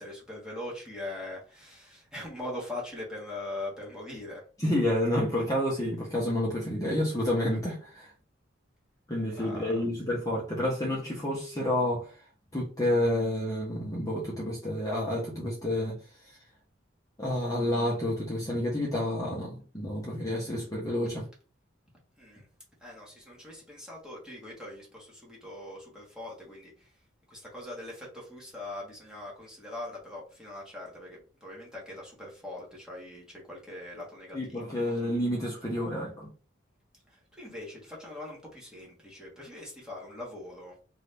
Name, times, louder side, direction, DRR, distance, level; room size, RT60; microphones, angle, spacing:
voice 1, 0.0-4.4 9.4-9.8 22.2-22.4 22.8-26.9 27.3-34.7 37.1-40.7, left 1 dB, 5° right, -4 dB, 1.2 m, -41 dB
voice 2, 4.6-8.1 9.1-12.1 12.5-16.0 17.2-21.2 34.3-36.3, left 1 dB, 20° left, -4 dB, 0.9 m, -29 dB
2.8 x 2.6 x 3.3 m, 0.36 s
head